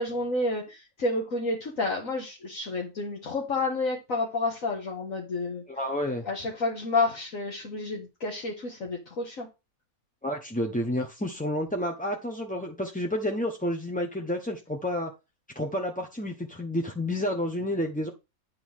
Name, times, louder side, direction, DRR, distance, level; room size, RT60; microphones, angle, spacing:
voice 1, 0.0-5.6 6.2-9.5, left 2 dB, 65° left, 1.9 m, -30 dB
voice 2, 5.7-6.2 10.2-15.1 15.5-18.1, left 1 dB, 10° left, 0.7 m, -30 dB
10.5 x 3.8 x 6.4 m
omnidirectional pair, 1.5 m